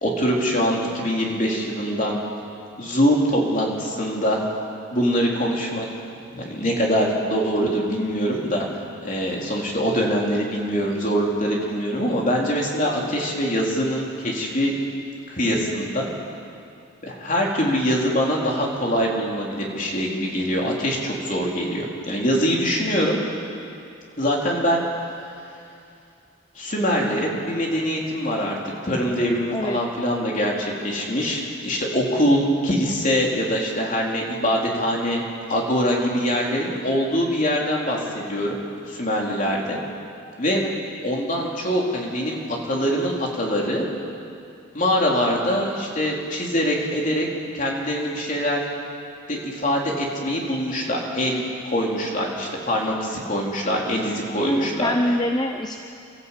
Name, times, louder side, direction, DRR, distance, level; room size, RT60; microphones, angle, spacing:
voice 1, 0.0-2.2 2.8-4.4 4.9-5.9 6.3-8.7 9.0-14.7 15.3-16.1 17.0-23.2 24.2-24.8 26.6-28.6 28.8-35.2 35.5-38.6 38.9-39.8 40.4-40.6 41.0-42.4 42.6-43.9 44.7-47.3 47.5-48.6 49.3-54.9, equal, 35° left, -2 dB, 3.6 m, -23 dB
voice 2, 54.4-55.8, left 1 dB, 20° left, 5 dB, 0.7 m, -24 dB
28.0 x 14.0 x 8.3 m, 2.5 s
head